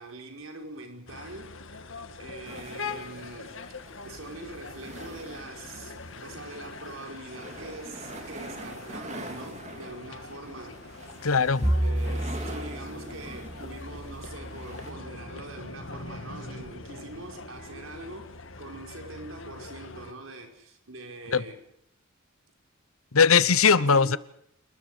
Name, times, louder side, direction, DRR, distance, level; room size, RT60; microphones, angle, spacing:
voice 1, 0.0-1.8 2.2-3.6 4.0-10.8 11.8-21.6 23.7-24.2, right 2 dB, 70° right, 5.2 m, -43 dB
sound 1, 1.1-20.1, left 3 dB, 65° left, 2.0 m, -43 dB
sound 2, 2.4-14.9, right 1 dB, 35° right, 3.3 m, -45 dB
voice 2, 11.2-11.7 21.3-21.4 23.1-24.2, left 5 dB, 90° left, 1.0 m, -20 dB
Bowed string instrument, 11.6-16.0, right 1 dB, 10° right, 1.5 m, -32 dB
27.5 x 21.0 x 5.1 m
head